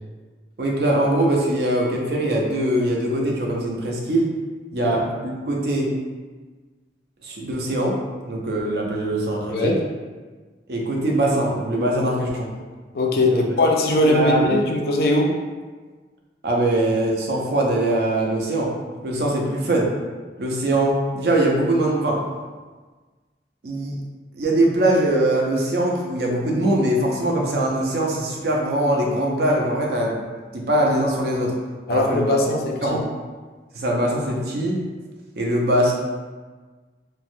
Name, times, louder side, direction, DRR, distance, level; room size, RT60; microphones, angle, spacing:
voice 1, 0.6-4.3 4.7-5.9 7.2-8.0 8.3-9.8 10.7-12.5 13.3-13.4 14.0-14.4 16.4-18.7 19.0-19.9 20.4-22.2 23.6-24.0 24.4-30.2 30.5-31.6 31.9-32.4 32.8-33.0 33.7-34.8 35.4-35.9, right 1 dB, 60° right, -1 dB, 0.5 m, -22 dB
voice 2, 12.9-15.3 31.9-33.0, left 1 dB, 55° left, 0 dB, 0.4 m, -20 dB
3.2 x 2.1 x 2.5 m, 1.4 s
head